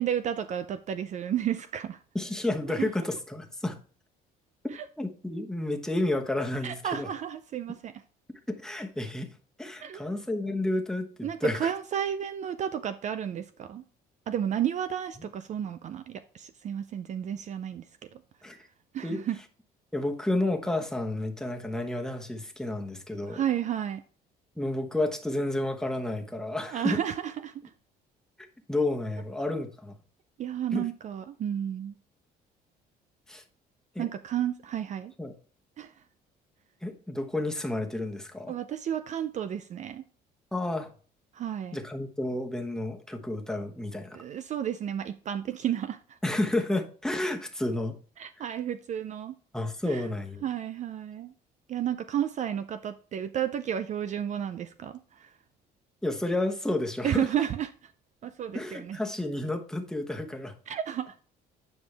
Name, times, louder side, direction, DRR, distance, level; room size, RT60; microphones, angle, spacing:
voice 1, 0.0-2.0 2.8-2.9 4.7-4.9 6.6-7.9 9.8-10.0 11.2-13.8 14.3-18.2 18.9-19.4 23.2-24.0 26.7-27.7 30.4-31.9 34.0-35.1 35.8-35.9 38.5-40.0 41.3-41.8 44.1-46.2 48.2-49.3 49.8-50.1 50.4-51.3 51.7-55.3 57.0-57.9 58.2-59.0 60.7-61.1, right 10 dB, 45° right, 0.4 m, -32 dB
voice 2, 2.1-3.8 5.0-7.1 8.5-9.3 9.6-11.7 18.4-18.6 19.0-19.2 19.9-23.4 24.6-27.0 28.7-30.0 30.7-30.8 33.3-33.4 33.9-34.1 35.2-35.3 36.8-38.5 40.5-40.9 41.7-44.2 46.2-48.0 49.5-50.4 56.0-57.3 58.5-60.5, left 1 dB, 5° left, 1.1 m, -31 dB
9.4 x 5.1 x 3.3 m
cardioid pair, 110°, 17 cm